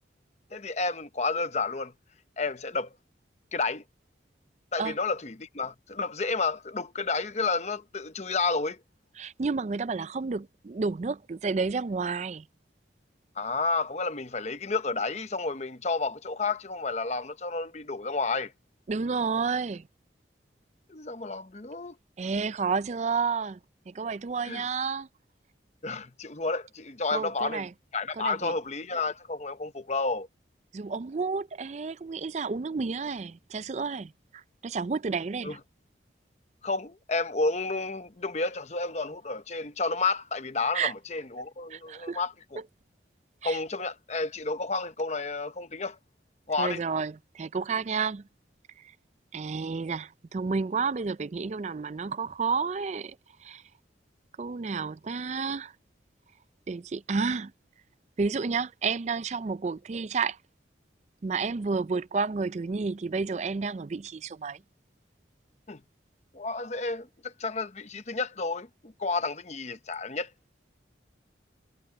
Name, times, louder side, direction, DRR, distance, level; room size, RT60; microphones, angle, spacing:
voice 1, 0.5-1.9 2.4-2.9 3.5-3.8 4.7-8.8 13.4-18.5 20.9-21.9 24.4-24.7 25.8-27.7 27.9-30.3 35.4-35.6 36.6-42.6 43.4-46.0 46.5-46.8 65.7-65.8 66.3-70.3, left 3 dB, 35° left, 0.9 m, -31 dB
voice 2, 9.2-12.5 18.9-19.9 22.2-23.6 23.9-25.1 27.1-27.7 28.1-28.5 30.7-35.6 40.7-40.9 41.7-42.2 42.6-42.7 43.4-43.6 46.6-48.2 49.3-53.2 53.4-53.6 54.4-55.7 56.7-57.5 58.2-60.4 61.2-64.6, right 4 dB, 35° right, 0.4 m, -31 dB
head